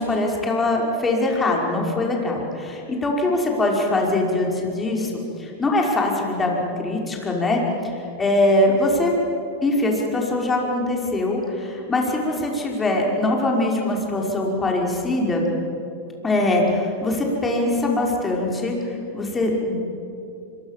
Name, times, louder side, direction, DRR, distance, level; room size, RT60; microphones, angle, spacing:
voice 1, 0.0-7.6 8.2-9.1 9.6-15.5 16.2-18.7 19.1-19.8, left 2 dB, 15° left, -1 dB, 5.5 m, -22 dB
25.5 x 23.0 x 7.6 m, 2.7 s
hypercardioid pair, 125°, 0 cm